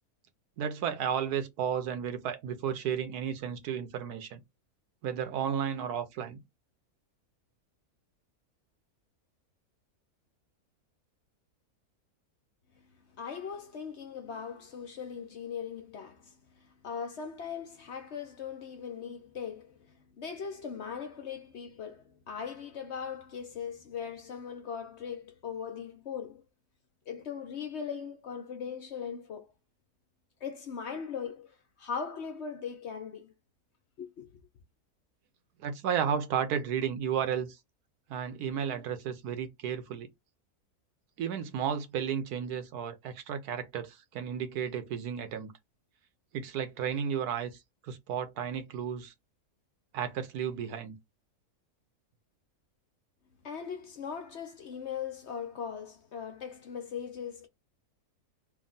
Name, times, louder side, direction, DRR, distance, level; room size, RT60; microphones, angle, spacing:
voice 1, 0.6-4.4 5.0-6.4 35.6-37.6 38.1-40.1 41.2-45.5 46.3-47.6 47.8-49.1 49.9-51.0, right 8 dB, 85° right, 1.3 m, -33 dB
voice 2, 13.2-26.4 27.1-29.5 30.4-33.3 34.0-34.4 53.4-57.5, left 7 dB, 55° left, 0.8 m, -39 dB
3.5 x 2.3 x 3.9 m
omnidirectional pair, 1.6 m